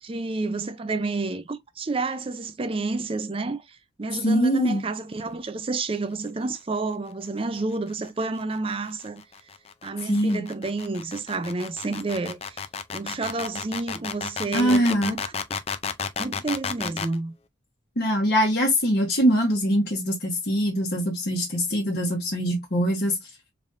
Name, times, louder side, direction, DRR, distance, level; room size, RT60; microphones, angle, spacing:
voice 1, 0.0-9.2 9.8-12.6 12.9-15.3 16.2-17.3, right 3 dB, 30° right, 0.5 m, -30 dB
voice 2, 4.2-4.8 10.1-10.4 14.5-15.1 18.0-23.2, equal, 50° left, 1.2 m, -23 dB
sound 1, 7.9-17.2, left 6 dB, 30° left, 0.4 m, -32 dB
3.9 x 3.4 x 2.5 m
head